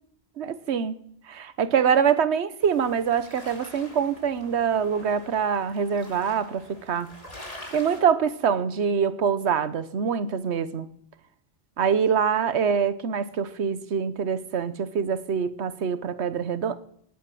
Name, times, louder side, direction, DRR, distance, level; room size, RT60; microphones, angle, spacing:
voice 1, 0.4-1.0 1.3-7.1 7.7-10.9 11.8-16.8, right 7 dB, 80° right, 14 dB, 1.2 m, -25 dB
sound 1, 2.6-8.0, left 1 dB, 35° left, 3.1 m, -45 dB
18.5 x 8.4 x 7.6 m, 0.70 s
omnidirectional pair, 1.1 m